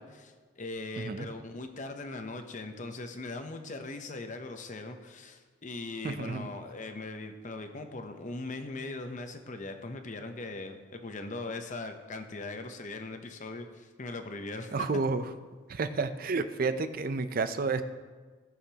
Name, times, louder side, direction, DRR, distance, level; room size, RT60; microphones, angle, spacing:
voice 1, 0.0-14.9, left 2 dB, 40° left, 6 dB, 0.8 m, -40 dB
voice 2, 1.0-1.3 6.0-6.5 14.7-15.2 15.7-17.8, right 4 dB, 45° right, 11 dB, 0.5 m, -30 dB
17.5 x 6.6 x 2.9 m, 1.4 s
head